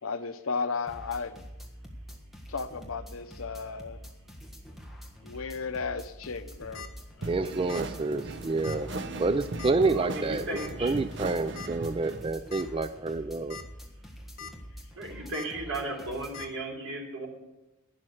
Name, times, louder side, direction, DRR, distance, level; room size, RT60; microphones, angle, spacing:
voice 1, 0.0-1.4 2.5-4.0 5.2-6.9 7.2-7.3, left 4 dB, 85° left, 0.8 m, -34 dB
sound 1, 0.9-16.5, equal, ahead, 1.5 m, -46 dB
sound 2, 6.4-6.9 7.7-7.9 8.2-8.3 8.6-8.8 9.6-9.9 10.6-10.7 11.6-11.7 12.1-12.2 12.5-12.6 13.3-13.6 14.0-14.5 15.3-15.5 16.3-16.5, left 6 dB, 45° left, 1.5 m, -42 dB
sound 3, 7.2-12.3, right 2 dB, 55° right, 0.7 m, -38 dB
voice 2, 7.3-8.9 9.2-10.5 10.8-13.6, right 3 dB, 25° right, 0.3 m, -28 dB
voice 3, 9.9-10.9 15.0-17.3, right 2 dB, 85° right, 3.3 m, -35 dB
11.5 x 10.0 x 6.5 m
head